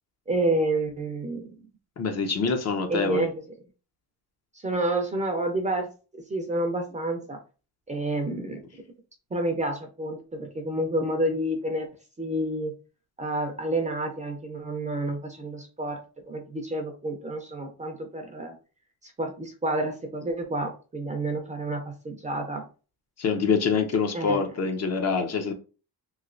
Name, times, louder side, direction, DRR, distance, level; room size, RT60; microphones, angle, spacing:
voice 1, 0.3-1.5 2.9-3.3 4.6-5.9 6.3-7.4 7.9-8.6 9.3-11.9 12.2-12.7 13.2-16.0 16.3-18.5 19.0-22.6 24.1-24.4, right 1 dB, 20° right, 3 dB, 0.4 m, -29 dB
voice 2, 2.0-3.3 23.2-25.5, left 5 dB, 40° left, 6 dB, 0.5 m, -25 dB
3.1 x 2.6 x 2.5 m, 0.34 s
cardioid pair, 135°, 42 cm